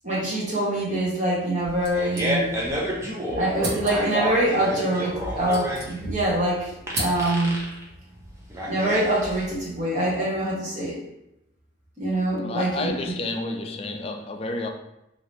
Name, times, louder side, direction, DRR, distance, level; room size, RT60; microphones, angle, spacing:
voice 1, 0.0-2.5 3.3-6.7 7.0-7.6 8.7-11.0 12.0-13.0, right 1 dB, 40° right, -5 dB, 1.1 m, -24 dB
Fart, 1.6-9.6, equal, 15° right, 0.6 m, -30 dB
sound 1, 1.8-2.8 3.1-3.2 3.6-4.3 5.1-6.4 6.6-7.6, right 1 dB, 75° right, 1.2 m, -35 dB
voice 2, 12.4-14.7, left 2 dB, 30° left, 4 dB, 0.3 m, -30 dB
2.8 x 2.8 x 3.1 m, 0.86 s
head